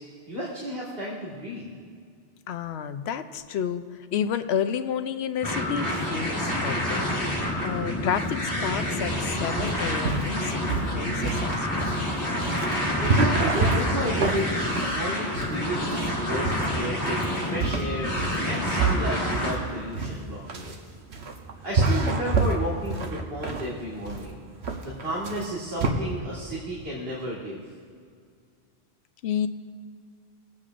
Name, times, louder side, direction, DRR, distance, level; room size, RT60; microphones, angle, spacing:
voice 1, 0.3-1.7 13.0-16.0 16.3-18.1 18.4-20.7 21.6-24.4 24.8-27.6, equal, 65° right, -7 dB, 2.0 m, -32 dB
voice 2, 2.5-11.8 29.2-29.5, left 8 dB, 85° left, 10 dB, 0.9 m, -31 dB
sound 1, 5.4-19.5, left 1 dB, 15° left, 3.1 m, -28 dB
sound 2, 9.6-25.9, right 3 dB, 90° right, 1.3 m, -28 dB
22.5 x 8.5 x 2.5 m, 2.2 s
omnidirectional pair, 1.1 m